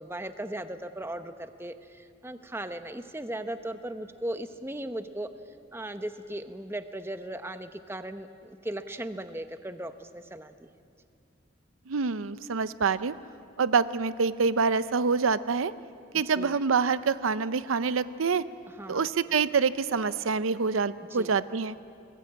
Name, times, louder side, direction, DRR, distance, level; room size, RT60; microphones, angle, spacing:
voice 1, 0.0-5.3 5.7-10.7 16.1-16.6 18.8-19.1 21.1-21.3, right 1 dB, 10° right, 9 dB, 0.8 m, -37 dB
voice 2, 11.9-13.1 13.6-15.7 16.1-18.4 18.9-21.7, right 5 dB, 85° right, 15 dB, 0.6 m, -26 dB
23.5 x 20.0 x 8.5 m, 2.5 s
head